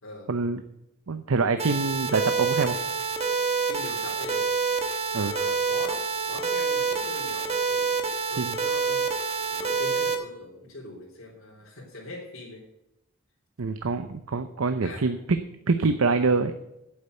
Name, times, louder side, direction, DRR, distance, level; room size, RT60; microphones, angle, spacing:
voice 1, 0.3-0.6 1.1-2.8 5.1-5.3 8.4-8.6 13.6-15.4 15.7-16.5, right 4 dB, 85° right, 10 dB, 0.7 m, -25 dB
sound 1, 1.6-10.1, right 5 dB, 30° right, 1.3 m, -27 dB
voice 2, 3.6-4.5 5.1-8.0 8.3-9.1 9.5-12.7 14.8-15.1, left 2 dB, 75° left, -3 dB, 3.5 m, -42 dB
8.7 x 8.0 x 7.9 m, 0.87 s
head